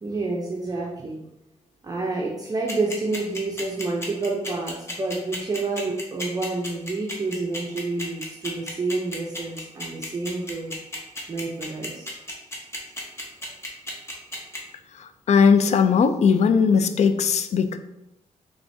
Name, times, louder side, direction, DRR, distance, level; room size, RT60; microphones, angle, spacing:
voice 1, 0.0-1.2 1.8-10.7 11.3-12.1, right 3 dB, 30° right, -1 dB, 0.6 m, -29 dB
sound 1, 2.7-14.6, left 1 dB, 20° left, 1.2 m, -33 dB
voice 2, 15.0-17.8, left 6 dB, 60° left, 10 dB, 0.4 m, -19 dB
4.7 x 3.4 x 2.7 m, 0.88 s
cardioid pair, 90°, 13 cm